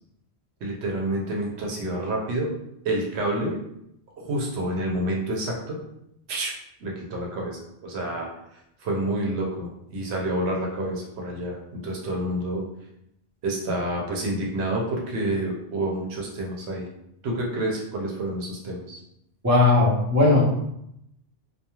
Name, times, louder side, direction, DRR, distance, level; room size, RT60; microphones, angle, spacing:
voice 1, 0.6-2.5 2.8-3.5 4.2-5.8 6.3-6.5 6.8-8.3 8.8-12.6 13.4-16.9 17.2-19.0, right 1 dB, 80° right, -1 dB, 0.9 m, -28 dB
voice 2, 19.4-20.4, left 3 dB, 20° right, -7 dB, 0.8 m, -18 dB
2.3 x 2.3 x 2.9 m, 0.78 s
omnidirectional pair, 1.1 m